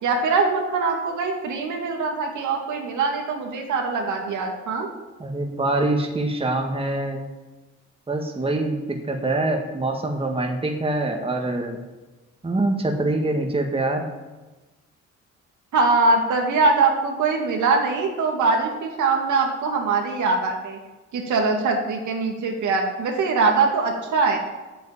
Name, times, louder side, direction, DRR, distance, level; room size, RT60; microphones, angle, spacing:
voice 1, 0.0-4.9 15.7-20.8 21.1-24.4, right 4 dB, 75° right, 2 dB, 2.2 m, -22 dB
voice 2, 5.2-7.2 8.1-11.8 12.4-14.1, right 2 dB, 20° right, 2 dB, 1.8 m, -24 dB
8.5 x 8.1 x 7.4 m, 1.1 s
cardioid pair, 90°, 30 cm